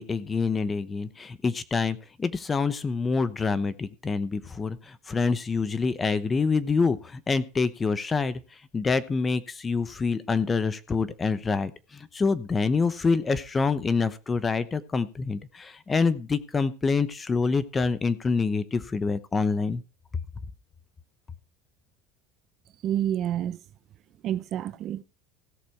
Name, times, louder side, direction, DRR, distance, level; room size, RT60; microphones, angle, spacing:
voice 1, 0.0-8.4 8.7-19.8, left 4 dB, 15° left, 0.8 m, -26 dB
voice 2, 22.8-23.6 24.2-25.0, right 11 dB, 40° right, 0.6 m, -28 dB
16.5 x 6.8 x 4.6 m
supercardioid pair, 145°, 0 cm